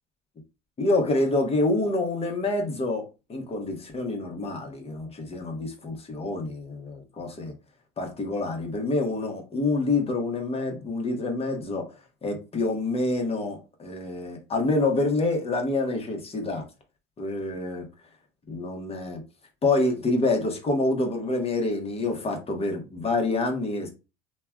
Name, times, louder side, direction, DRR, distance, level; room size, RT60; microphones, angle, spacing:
voice 1, 0.8-3.0 3.3-7.5 8.0-11.9 12.2-16.6 17.2-17.9 18.5-19.2 19.6-23.9, left 2 dB, 30° left, 1.0 m, -27 dB
3.2 x 2.2 x 2.2 m
hypercardioid pair, 80°, 20 cm